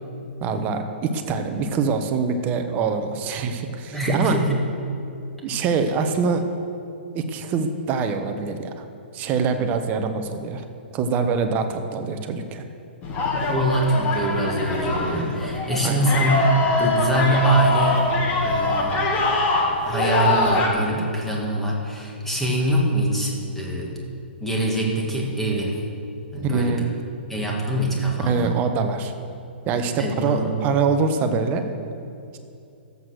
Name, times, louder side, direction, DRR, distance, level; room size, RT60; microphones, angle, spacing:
voice 1, 0.4-4.4 5.4-6.4 7.1-8.9 9.1-10.6 10.9-12.6 15.8-16.0 26.4-26.8 28.2-29.1 29.6-31.6, right 5 dB, 30° right, 6 dB, 1.0 m, -24 dB
voice 2, 3.9-4.6 13.4-16.4 16.8-18.1 18.4-19.1 19.9-24.0 24.4-25.8 26.3-26.9 27.3-28.5 30.0-30.7, right 1 dB, 5° left, -3 dB, 2.2 m, -24 dB
sound 1, 13.0-20.7, left 2 dB, 25° left, 1.8 m, -23 dB
13.0 x 8.2 x 6.4 m, 2.6 s
hypercardioid pair, 140°, 6 cm